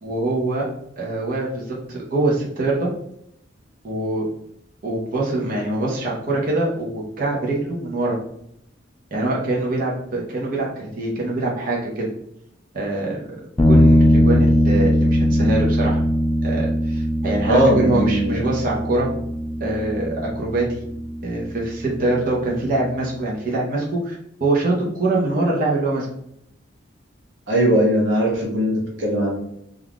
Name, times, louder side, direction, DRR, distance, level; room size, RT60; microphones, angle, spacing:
voice 1, 0.0-0.7 1.0-2.9 3.8-4.3 4.8-8.2 9.1-12.1 12.7-13.1 13.6-16.0 16.4-19.1 19.6-20.8 21.2-24.2 24.4-26.1, right 2 dB, 50° right, -4 dB, 0.6 m, -24 dB
sound 1, 13.6-23.1, equal, 15° left, 0.3 m, -20 dB
voice 2, 17.4-18.4 27.5-29.4, equal, 90° right, -2 dB, 0.8 m, -19 dB
2.4 x 2.3 x 3.4 m, 0.75 s
head